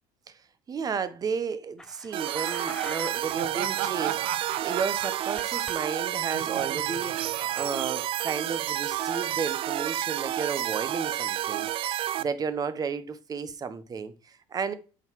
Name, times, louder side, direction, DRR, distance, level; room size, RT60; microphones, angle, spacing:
voice 1, 0.7-7.3 7.6-14.7, right 5 dB, 30° right, 1.0 m, -33 dB
sound 1, 1.8-3.4 3.6-3.8 4.2-5.8 6.0-6.4 8.3-8.4, left 1 dB, 5° left, 0.7 m, -45 dB
sound 2, 2.1-12.2, right 13 dB, 50° right, 0.4 m, -30 dB
Laughter, 3.4-8.8, right 11 dB, 80° right, 0.8 m, -37 dB
7.9 x 4.0 x 5.8 m
supercardioid pair, 115°, 12 cm